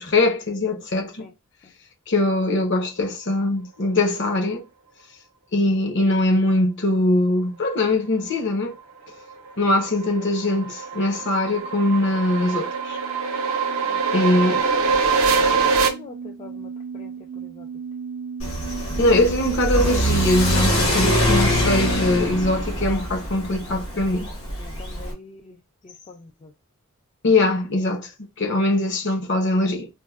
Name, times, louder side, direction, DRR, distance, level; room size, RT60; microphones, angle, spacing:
voice 1, 0.0-1.3 2.1-4.6 5.5-8.7 9.6-13.0 14.1-14.7 19.0-24.3 27.2-29.9, left 2 dB, 55° left, 0.7 m, -22 dB
sound 1, 9.3-15.9, right 5 dB, 80° right, 0.6 m, -23 dB
sound 2, 11.2-20.6, right 6 dB, 40° right, 0.5 m, -36 dB
voice 2, 13.8-17.7 22.8-23.1 23.7-24.0 24.6-26.5 29.4-29.5, left 4 dB, 30° left, 0.3 m, -44 dB
Car / Accelerating revving vroom, 18.4-25.1, equal, 80° left, 1.1 m, -23 dB
4.2 x 2.0 x 2.3 m
head